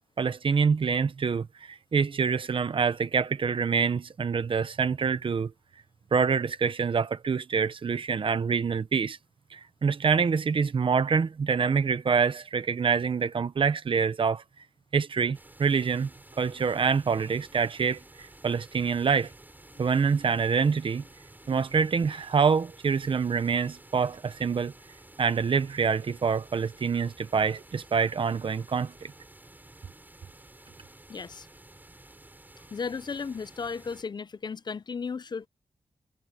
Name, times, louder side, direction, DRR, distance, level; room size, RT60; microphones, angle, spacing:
voice 1, 0.2-5.5 6.1-9.2 9.5-14.4 14.9-16.1 16.4-19.3 19.8-21.0 21.5-24.7 25.2-29.1, right 5 dB, 55° right, 1.0 m, -26 dB
sound 1, 15.3-34.0, right 2 dB, 15° right, 7.8 m, -52 dB
voice 2, 31.1-31.5 32.7-35.5, left 5 dB, 45° left, 0.6 m, -35 dB
wide cardioid pair, 110°, 10 cm